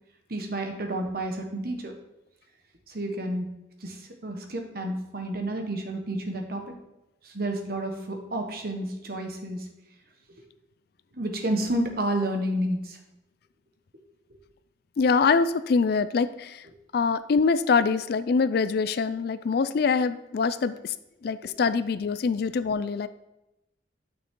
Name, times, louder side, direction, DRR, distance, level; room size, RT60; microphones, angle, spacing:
voice 1, 0.3-1.9 2.9-3.5 3.8-6.7 7.2-9.7 11.1-13.0, right 1 dB, 50° right, 4 dB, 1.2 m, -30 dB
voice 2, 15.0-16.6 16.9-20.9 21.2-23.1, left 5 dB, 55° left, 13 dB, 0.3 m, -24 dB
9.3 x 6.0 x 3.7 m, 0.93 s
head